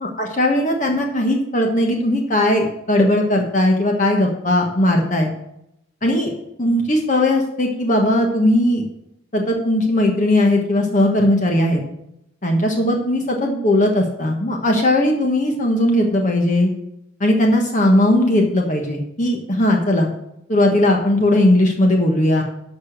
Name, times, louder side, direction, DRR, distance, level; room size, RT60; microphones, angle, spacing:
voice 1, 0.0-5.3 6.0-6.3 6.6-8.8 9.3-11.8 12.4-16.7 17.2-20.1 20.5-22.4, left 1 dB, 40° left, 1 dB, 1.3 m, -18 dB
12.0 x 5.0 x 6.5 m, 0.81 s
head